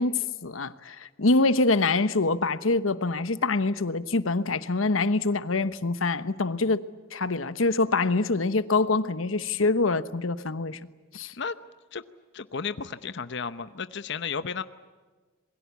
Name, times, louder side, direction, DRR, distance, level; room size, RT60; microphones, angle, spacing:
voice 1, 0.0-6.8 7.1-10.8 11.1-11.3, left 3 dB, 85° left, 1.1 m, -25 dB
voice 2, 12.3-14.6, left 5 dB, 60° left, 0.9 m, -33 dB
27.0 x 22.0 x 8.3 m
head